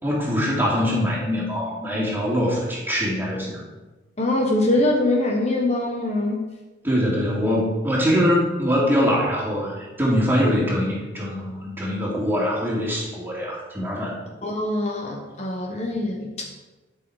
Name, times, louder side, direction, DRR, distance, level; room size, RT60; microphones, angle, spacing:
voice 1, 0.0-3.6 6.8-14.2, equal, 10° right, -5 dB, 2.7 m, -23 dB
voice 2, 4.2-6.4 14.4-16.3, left 2 dB, 35° left, 1 dB, 1.0 m, -23 dB
11.5 x 6.4 x 4.8 m, 1.2 s
head